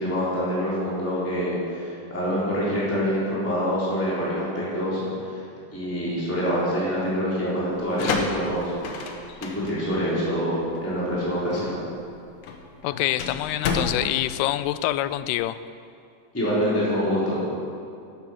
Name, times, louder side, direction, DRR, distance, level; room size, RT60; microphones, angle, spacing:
voice 1, 0.0-5.4 5.7-8.7 9.4-11.7 16.3-17.5, equal, 5° left, -8 dB, 3.8 m, -26 dB
sound 1, 7.7-15.3, left 4 dB, 65° left, 2.3 m, -32 dB
voice 2, 12.8-15.6, left 14 dB, 85° left, 14 dB, 2.5 m, -26 dB
13.0 x 12.0 x 6.1 m, 2.5 s
omnidirectional pair, 4.6 m